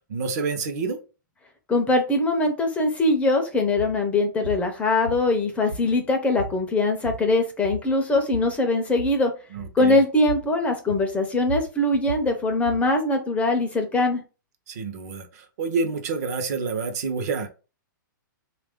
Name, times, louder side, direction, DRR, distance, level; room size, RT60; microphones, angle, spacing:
voice 1, 0.1-1.0 9.5-10.0 14.7-17.5, right 4 dB, 50° right, 7 dB, 0.8 m, -28 dB
voice 2, 1.7-9.3 9.7-14.2, left 2 dB, 10° left, 4 dB, 0.5 m, -22 dB
sound 1, 3.7-4.0 4.4-4.7 5.1-6.1 6.4-6.6 6.9-7.4 7.6-8.6 8.9-9.2 9.6-9.8 10.3-10.5 10.9-12.9, right 1 dB, 85° right, 1.2 m, -35 dB
3.3 x 2.4 x 3.5 m, 0.33 s
hypercardioid pair, 145°, 11 cm